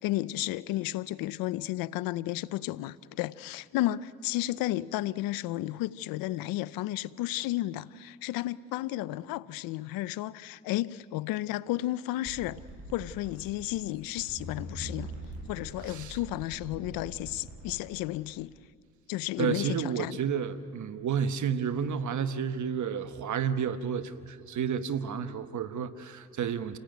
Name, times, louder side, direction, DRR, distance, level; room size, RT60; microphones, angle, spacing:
voice 1, 0.0-12.6 12.9-15.1 15.5-18.5 19.1-20.1, left 16 dB, 85° left, 0.6 m, -33 dB
sound 1, 12.2-17.8, right 1 dB, 45° right, 7.9 m, -43 dB
voice 2, 15.9-16.2 19.4-26.8, right 7 dB, 60° right, 1.3 m, -31 dB
28.5 x 19.0 x 9.3 m
supercardioid pair, 65°, 33 cm